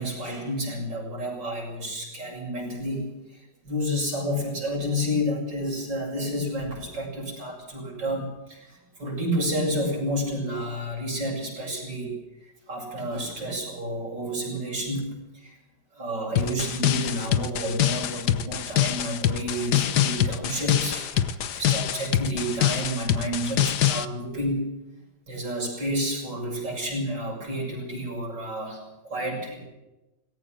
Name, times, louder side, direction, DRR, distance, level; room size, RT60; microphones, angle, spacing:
voice 1, 0.0-15.6 15.9-24.8 25.3-29.6, equal, 85° right, -2 dB, 8.2 m, -30 dB
sound 1, 16.4-24.1, left 11 dB, 70° left, 1.5 m, -25 dB
19.5 x 17.5 x 7.7 m, 1.0 s
omnidirectional pair, 1.9 m